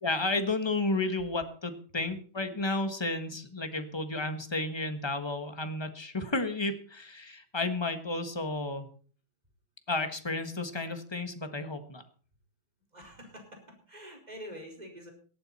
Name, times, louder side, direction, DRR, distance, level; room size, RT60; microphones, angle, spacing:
voice 1, 0.0-8.9 9.9-12.0, left 2 dB, 15° left, 8 dB, 1.3 m, -32 dB
voice 2, 12.9-15.1, equal, 20° right, 2 dB, 4.7 m, -46 dB
17.5 x 13.0 x 4.2 m, 0.42 s
omnidirectional pair, 2.2 m